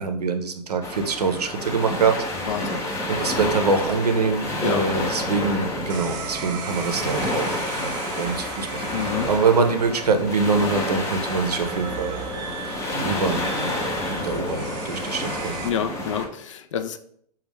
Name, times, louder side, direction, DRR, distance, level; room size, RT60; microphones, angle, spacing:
voice 1, 0.0-2.3 2.6-2.7 3.1-13.7 14.1-15.6, right 4 dB, 70° right, 6 dB, 0.6 m, -24 dB
sound 1, 0.8-16.3, left 1 dB, 15° left, 0.7 m, -29 dB
voice 2, 2.4-2.8 4.6-4.9 8.9-9.3 15.6-17.0, left 8 dB, 50° left, 9 dB, 0.4 m, -28 dB
sound 2, 5.9-15.7, right 6 dB, 20° right, 0.4 m, -37 dB
5.1 x 2.3 x 3.4 m, 0.66 s
figure-of-eight pair, 110°, 21 cm